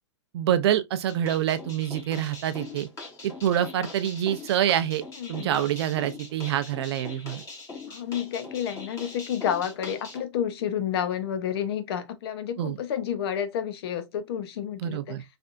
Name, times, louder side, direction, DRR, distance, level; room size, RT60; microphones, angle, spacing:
voice 1, 0.3-2.9 3.2-5.0 5.3-7.4 12.6-12.8 14.8-15.2, right 11 dB, 55° right, 0.5 m, -26 dB
sound 1, 1.1-10.2, left 3 dB, 20° left, 1.2 m, -42 dB
voice 2, 5.2-5.5 7.9-15.2, left 9 dB, 55° left, 0.7 m, -30 dB
3.3 x 2.6 x 2.5 m
hypercardioid pair, 140°, 16 cm